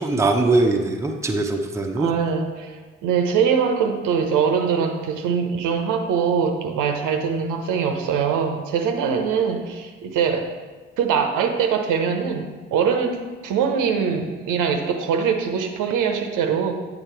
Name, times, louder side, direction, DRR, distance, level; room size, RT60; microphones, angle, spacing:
voice 1, 0.0-2.1, right 2 dB, 10° right, 2 dB, 0.7 m, -21 dB
voice 2, 2.0-10.5 11.0-16.7, right 6 dB, 55° right, 4 dB, 0.8 m, -22 dB
9.0 x 3.7 x 4.6 m, 1.3 s
figure-of-eight pair, 40°, 38 cm